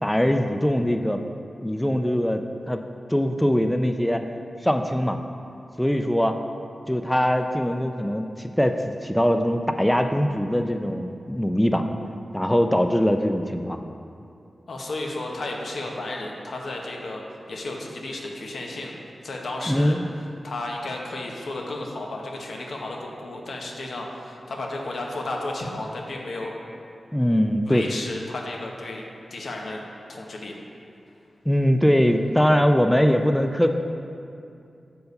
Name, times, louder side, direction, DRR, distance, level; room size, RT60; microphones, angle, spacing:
voice 1, 0.0-1.2 1.6-2.4 2.7-2.8 3.1-4.2 4.6-5.2 5.8-6.4 6.9-11.9 12.3-13.8 19.7-20.0 27.1-27.9 31.5-33.7, equal, 5° left, 6 dB, 0.4 m, -22 dB
voice 2, 14.7-17.2 17.5-18.9 19.2-20.0 20.4-26.6 27.7-29.0 29.3-29.8 30.1-30.5, left 2 dB, 80° left, 0 dB, 0.9 m, -33 dB
6.5 x 4.6 x 5.4 m, 2.5 s
cardioid pair, 65°, 0 cm